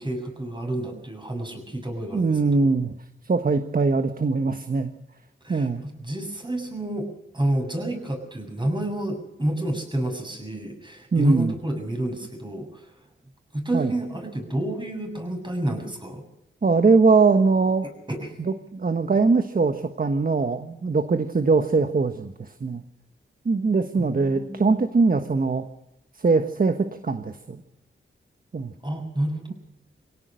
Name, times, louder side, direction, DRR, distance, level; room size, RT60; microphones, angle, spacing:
voice 1, 0.0-2.7 5.4-7.1 7.3-12.9 13.5-16.2 17.8-18.4 24.0-24.7 28.8-29.5, right 1 dB, 20° right, 4 dB, 7.2 m, -29 dB
voice 2, 2.1-2.9 3.2-4.9 5.5-5.8 11.1-11.5 13.7-13.9 16.6-17.9 18.4-22.8 23.4-25.6 26.1-27.6 28.5-28.7, right 4 dB, 45° right, 8 dB, 1.4 m, -22 dB
25.0 x 17.5 x 6.4 m, 0.84 s
wide cardioid pair, 85°, 21 cm